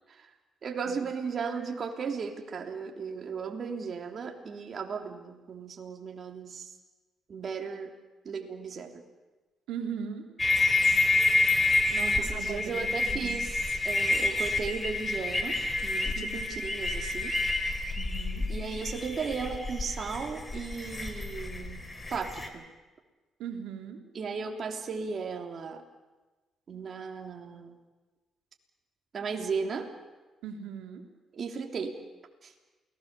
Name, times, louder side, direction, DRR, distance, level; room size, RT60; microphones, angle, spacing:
voice 1, 0.6-6.7 7.3-8.0 8.2-9.0 12.2-17.4 18.5-22.6 24.1-25.8 26.7-27.8 29.1-29.9 31.3-32.0 32.4-32.5, right 5 dB, 50° right, 3 dB, 3.3 m, -36 dB
voice 2, 9.7-10.3 11.9-13.4 16.1-16.3 18.0-18.4 23.4-24.0 30.4-31.0, right 7 dB, 90° right, 3 dB, 3.2 m, -39 dB
sound 1, 10.4-22.5, left 2 dB, 20° left, 3.2 m, -28 dB
28.5 x 19.5 x 6.9 m, 1.2 s
cardioid pair, 90°, 0 cm